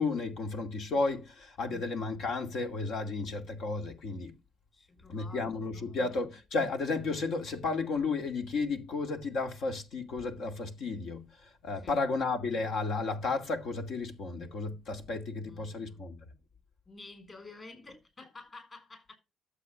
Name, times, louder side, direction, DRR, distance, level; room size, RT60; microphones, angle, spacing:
voice 1, 0.0-4.4 5.1-16.2, left 3 dB, 70° left, 2.4 m, -33 dB
voice 2, 4.7-6.2 11.8-12.2 15.4-16.1 16.9-19.1, left 3 dB, 30° left, 6.4 m, -51 dB
12.5 x 7.5 x 6.3 m
cardioid pair, 90°, 0 cm